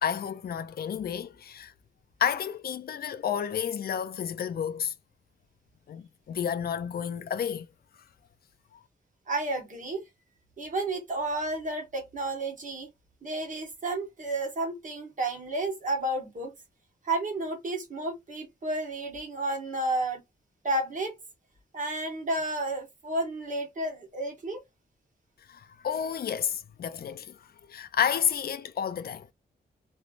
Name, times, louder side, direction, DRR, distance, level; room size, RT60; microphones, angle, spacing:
voice 1, 0.0-1.7 2.2-4.9 5.9-7.7 25.5-29.3, left 8 dB, 55° left, 0.5 m, -31 dB
voice 2, 9.3-10.0 10.6-12.9 13.2-16.5 17.0-20.2 20.6-21.2 21.7-24.6, right 2 dB, 45° right, 1.5 m, -31 dB
3.1 x 3.1 x 2.5 m
wide cardioid pair, 160°, 19 cm